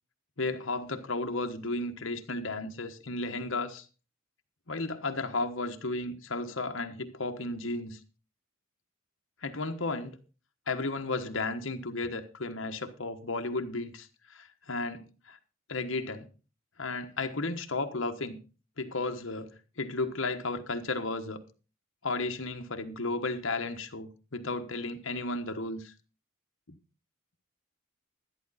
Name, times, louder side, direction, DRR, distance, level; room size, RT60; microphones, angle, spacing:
voice 1, 0.4-3.8 4.7-8.0 9.4-10.2 10.7-15.4 15.7-16.3 16.8-18.4 18.8-21.4 22.0-25.9, left 3 dB, 65° left, 1.3 m, -34 dB
11.5 x 11.5 x 4.1 m
head